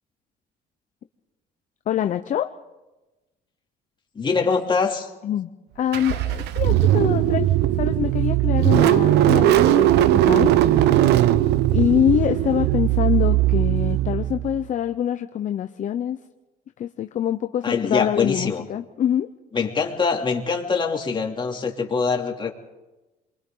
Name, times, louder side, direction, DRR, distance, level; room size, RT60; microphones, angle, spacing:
voice 1, 1.9-2.5 5.2-5.5 5.8-7.5 7.8-10.5 11.7-16.2 16.8-19.3, left 10 dB, 50° left, 8 dB, 0.8 m, -24 dB
voice 2, 4.1-5.1 17.6-18.6 19.5-22.5, left 5 dB, 30° left, 1 dB, 3.0 m, -23 dB
Car / Engine starting, 5.9-14.7, right 13 dB, 80° right, 0.8 m, -19 dB
29.5 x 24.0 x 3.9 m, 1.1 s
cardioid pair, 110°, 17 cm